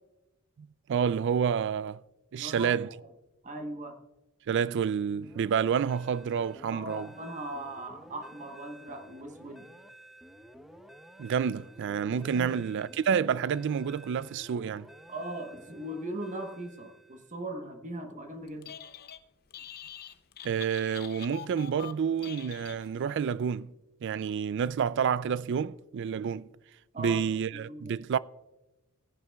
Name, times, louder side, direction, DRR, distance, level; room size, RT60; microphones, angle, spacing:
voice 1, 0.9-2.0 2.3-2.9 4.5-7.1 11.2-14.9 20.4-23.7 24.0-26.4 27.0-28.2, right 7 dB, 55° right, 0.3 m, -29 dB
voice 2, 2.4-2.9 3.4-4.0 6.7-9.7 12.3-12.9 15.1-18.7 26.9-27.2 27.5-28.0, right 1 dB, 35° right, 1.1 m, -39 dB
sound 1, 5.2-17.3, right 1 dB, ahead, 0.6 m, -52 dB
Telephone, 18.5-19.2 19.5-23.2, left 9 dB, 45° left, 0.6 m, -45 dB
18.5 x 10.5 x 2.3 m
head